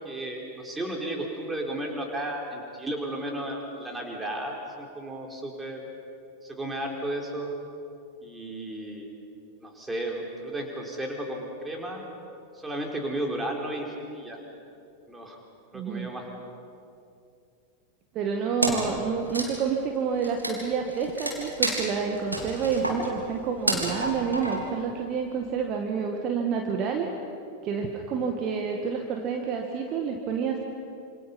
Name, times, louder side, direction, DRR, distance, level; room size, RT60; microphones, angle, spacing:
voice 1, 0.0-5.8 6.4-7.5 8.2-9.1 9.6-12.0 12.5-13.9 14.1-14.4 15.1-15.4 15.7-16.3, right 1 dB, 10° right, 1 dB, 4.3 m, -34 dB
voice 2, 15.7-16.1 18.1-27.1 27.6-30.6, right 6 dB, 35° right, 2 dB, 2.0 m, -29 dB
Wood, 18.6-19.0 19.2-24.8, right 1 dB, 85° right, 3.6 m, -30 dB
27.0 x 27.0 x 5.5 m, 2.6 s
figure-of-eight pair, 90°, 0 cm